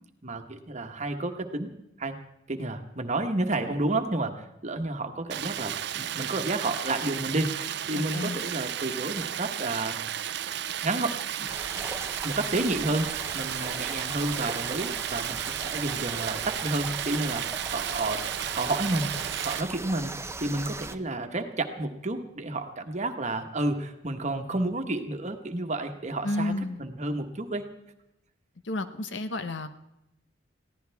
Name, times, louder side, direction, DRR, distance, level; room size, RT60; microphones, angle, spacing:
voice 1, 0.2-1.7 2.0-2.2 2.5-10.0 10.8-11.5 12.2-17.5 17.7-18.2 18.5-19.2 19.4-26.5 26.8-27.6, right 2 dB, 40° right, 6 dB, 1.3 m, -30 dB
Stream, 5.3-19.6, right 10 dB, 65° right, 0.6 m, -33 dB
voice 2, 7.9-8.4 26.2-26.8 28.6-29.7, left 2 dB, 70° left, 10 dB, 1.0 m, -31 dB
sound 1, 11.5-20.9, right 3 dB, 15° right, 0.7 m, -39 dB
22.0 x 15.5 x 3.5 m, 0.86 s
head